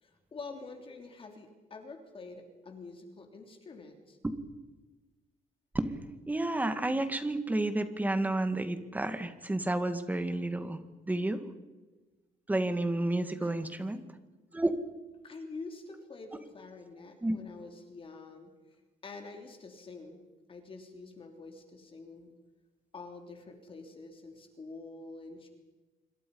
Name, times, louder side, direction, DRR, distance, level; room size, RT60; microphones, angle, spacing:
voice 1, 0.0-4.2 13.4-13.6 15.2-18.5 19.0-20.2 20.5-22.3 22.9-25.5, left 3 dB, 35° left, 4 dB, 3.2 m, -47 dB
voice 2, 6.3-10.8 11.1-11.5 12.5-14.0 14.5-14.7 17.2-17.4, right 2 dB, 10° right, 9 dB, 1.9 m, -30 dB
27.0 x 24.5 x 5.4 m, 1.2 s
cardioid pair, 145°, 16 cm